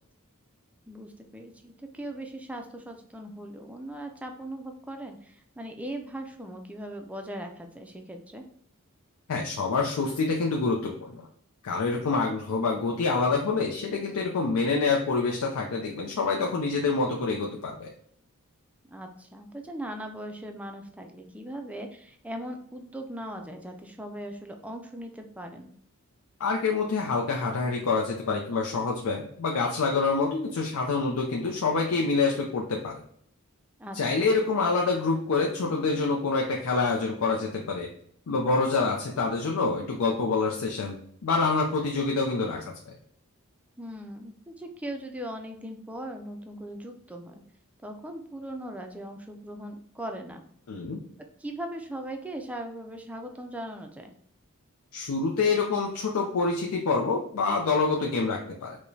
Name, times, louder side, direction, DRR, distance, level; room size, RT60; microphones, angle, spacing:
voice 1, 0.9-8.4 18.9-25.7 33.8-34.3 43.8-47.4 47.8-50.4 51.4-54.1, right 1 dB, 5° right, 4 dB, 0.3 m, -39 dB
voice 2, 9.3-11.3 11.6-17.9 26.4-33.0 33.9-37.9 38.3-42.9 50.7-51.0 54.9-58.8, left 4 dB, 80° left, 0 dB, 0.5 m, -26 dB
4.7 x 2.1 x 2.7 m, 0.66 s
head